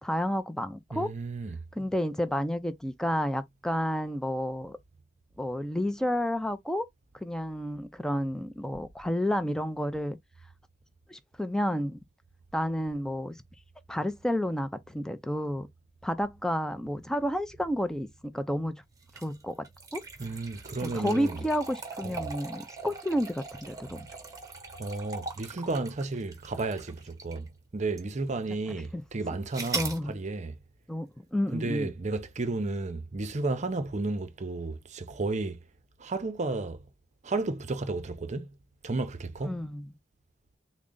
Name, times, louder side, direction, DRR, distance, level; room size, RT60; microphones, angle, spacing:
voice 1, 0.0-1.1 1.8-4.8 5.4-6.9 7.2-10.2 11.1-12.0 12.5-13.3 13.9-15.7 16.0-18.7 19.2-19.7 19.9-20.0 20.8-24.1 28.9-29.0 29.8-30.1 30.9-31.9 39.5-39.9, equal, 5° left, 0.4 m, -30 dB
voice 2, 0.9-1.9 20.2-21.4 22.0-22.3 24.8-30.6 31.5-35.6 36.0-36.8 37.2-38.5 38.8-39.6, right 3 dB, 40° right, 0.6 m, -33 dB
sound 1, 19.0-27.5 28.0-28.1 29.5-30.0, right 4 dB, 20° right, 1.0 m, -40 dB
3.7 x 2.1 x 3.7 m
head